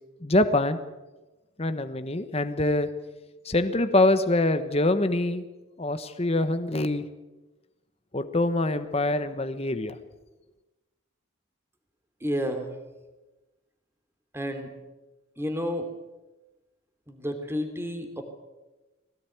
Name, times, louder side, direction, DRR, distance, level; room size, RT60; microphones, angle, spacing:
voice 1, 0.2-0.8 1.6-2.9 3.4-5.4 5.8-7.0 8.1-10.0, left 2 dB, 30° left, 9 dB, 1.2 m, -24 dB
voice 2, 12.2-12.7 14.3-14.7 15.4-15.9 17.1-18.2, equal, 10° right, 6 dB, 3.1 m, -30 dB
21.0 x 18.0 x 9.4 m, 1.1 s
head